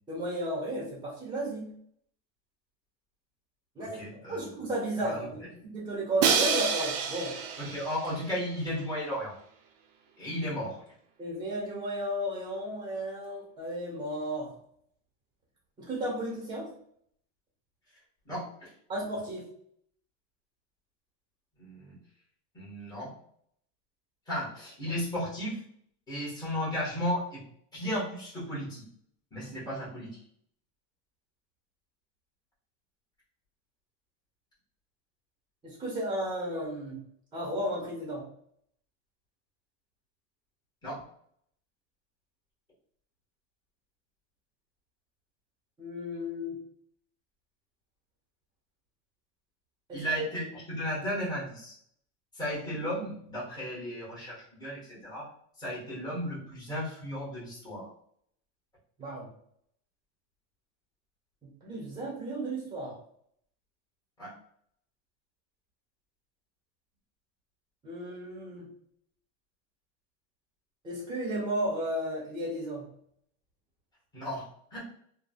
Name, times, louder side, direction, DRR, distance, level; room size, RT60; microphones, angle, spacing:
voice 1, 0.1-1.7 3.7-4.0 4.3-7.3 11.2-14.5 15.8-16.7 18.9-19.4 35.6-37.0 37.3-38.3 45.8-46.6 49.9-50.2 59.0-59.3 61.4-63.0 67.8-68.7 70.8-72.9, right 1 dB, 10° right, -5 dB, 1.1 m, -34 dB
voice 2, 3.8-4.5 5.0-5.3 7.6-9.3 10.2-10.8 18.2-18.7 21.6-22.0 22.5-23.1 24.3-25.6 26.1-27.4 27.7-28.8 29.3-30.1 40.8-41.0 49.9-51.7 52.3-55.3 55.6-57.9 64.2-64.3 74.1-74.4 74.7-74.8, equal, 10° left, -9 dB, 1.5 m, -34 dB
Crash cymbal, 6.2-8.2, right 6 dB, 60° right, 0.6 m, -28 dB
3.6 x 2.3 x 2.3 m, 0.65 s
cardioid pair, 155°, 37 cm